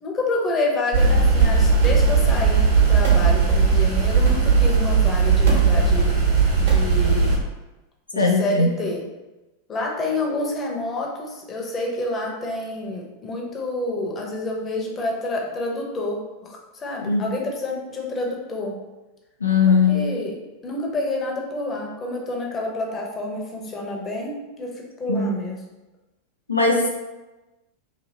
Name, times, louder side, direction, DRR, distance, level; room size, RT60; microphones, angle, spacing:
voice 1, 0.0-6.2 6.6-7.4 8.1-9.0 9.7-18.8 19.7-25.6, left 2 dB, 30° left, -1 dB, 0.7 m, -28 dB
sound 1, 0.9-7.4, right 5 dB, 70° right, 1.2 m, -17 dB
voice 2, 8.1-8.7 17.0-17.2 19.4-20.1 25.1-25.3 26.5-26.9, left 4 dB, 90° left, 0 dB, 0.4 m, -19 dB
2.8 x 2.6 x 2.7 m, 1.1 s
figure-of-eight pair, 90°, 0 cm